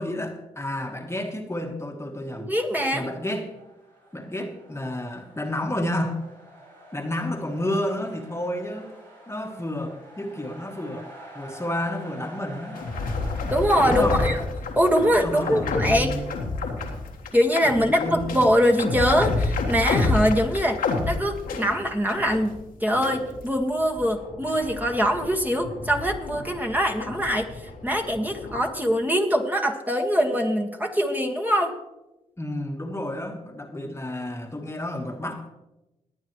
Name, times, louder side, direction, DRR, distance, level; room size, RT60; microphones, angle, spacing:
voice 1, 0.0-2.5 2.9-3.5 4.1-6.2 6.9-8.9 9.3-12.8 13.8-14.2 15.2-16.3 17.6-18.3 32.4-35.5, left 1 dB, 20° left, 3 dB, 1.5 m, -30 dB
voice 2, 2.3-3.1 13.5-14.4 14.8-16.2 17.3-31.8, equal, 10° right, 2 dB, 1.7 m, -23 dB
sound 1, 3.2-14.4, right 1 dB, 90° right, 4.7 m, -46 dB
sound 2, 12.7-22.6 22.9-28.6, left 3 dB, 85° left, 1.7 m, -30 dB
19.0 x 8.8 x 3.2 m, 0.97 s
supercardioid pair, 45°, 15 cm